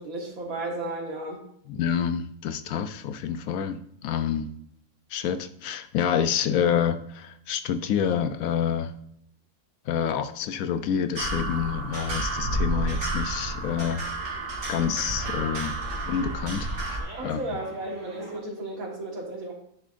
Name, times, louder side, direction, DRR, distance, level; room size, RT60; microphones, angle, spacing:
voice 1, 0.0-1.4 17.2-19.5, right 2 dB, 70° right, 0 dB, 2.0 m, -34 dB
voice 2, 1.7-4.5 5.1-8.9 9.9-14.0 14.7-15.8 16.1-17.4, left 8 dB, 75° left, 10 dB, 1.0 m, -28 dB
sound 1, 11.2-17.0, right 2 dB, 50° right, 2.2 m, -30 dB
sound 2, 12.7-18.4, right 1 dB, 25° right, 2.1 m, -47 dB
9.9 x 7.0 x 2.5 m, 0.70 s
omnidirectional pair, 1.5 m